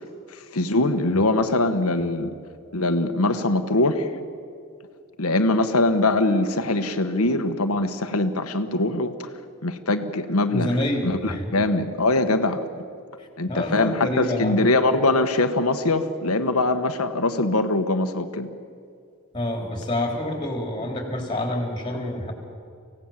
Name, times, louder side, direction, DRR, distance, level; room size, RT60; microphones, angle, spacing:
voice 1, 0.5-2.3 2.7-4.1 5.2-9.3 9.6-10.7 11.0-12.6 13.4-18.5, left 2 dB, 85° left, 7 dB, 1.3 m, -22 dB
voice 2, 10.5-11.5 13.2-14.7 19.3-22.3, left 1 dB, 20° left, 3 dB, 3.7 m, -27 dB
24.5 x 17.0 x 7.4 m, 2.4 s
head